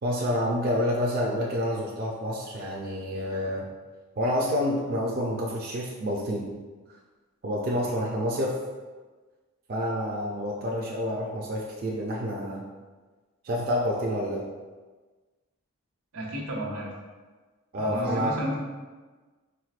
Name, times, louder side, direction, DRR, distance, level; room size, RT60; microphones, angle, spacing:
voice 1, 0.0-3.6 4.2-6.5 7.4-8.6 9.7-12.6 13.4-14.4 17.7-18.4, equal, 45° right, -3 dB, 0.4 m, -28 dB
voice 2, 16.1-16.9 17.7-18.6, equal, 90° right, -3 dB, 1.0 m, -31 dB
4.6 x 3.4 x 2.4 m, 1.3 s
head